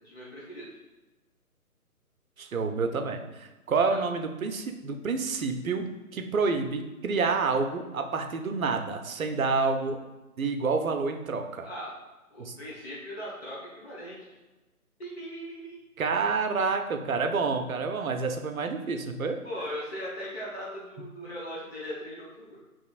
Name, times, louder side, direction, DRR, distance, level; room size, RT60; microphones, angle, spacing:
voice 1, 0.0-0.7 3.8-4.0 11.6-11.9 12.3-14.3 15.0-15.8 19.4-22.6, equal, 45° left, -6 dB, 1.1 m, -39 dB
voice 2, 2.4-10.0 10.4-11.7 12.4-12.6 16.0-19.4, right 4 dB, 65° right, 5 dB, 0.6 m, -28 dB
5.1 x 3.0 x 2.4 m, 1.1 s
figure-of-eight pair, 145°, 45 cm